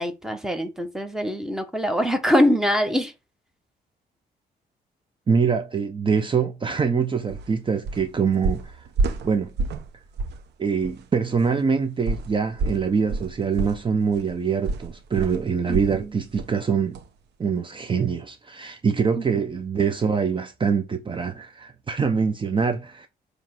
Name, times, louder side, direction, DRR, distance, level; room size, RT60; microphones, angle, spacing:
voice 1, 0.0-3.1 15.7-16.2 19.1-19.2, equal, 5° right, 1.4 m, -23 dB
voice 2, 5.3-8.9 9.2-9.5 10.6-17.0 17.4-23.1, right 6 dB, 30° right, 0.9 m, -24 dB
sound 1, 7.3-7.5 7.8-8.1 8.4-9.9 10.2-10.4 10.8-10.9 12.1-16.1 16.4-16.6 16.9-17.0, right 3 dB, 85° right, 1.1 m, -28 dB
7.3 x 3.3 x 6.1 m
cardioid pair, 105°, 17 cm